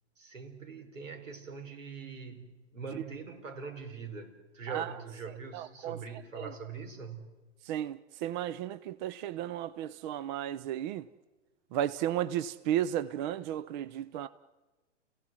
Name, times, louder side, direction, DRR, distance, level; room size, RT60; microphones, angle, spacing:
voice 1, 0.2-7.3, right 5 dB, 85° right, 5.0 m, -43 dB
voice 2, 5.5-6.0 6.4-6.5 7.6-11.1 11.7-14.3, right 11 dB, 40° right, 0.8 m, -34 dB
30.0 x 17.0 x 7.7 m
hypercardioid pair, 125°, 37 cm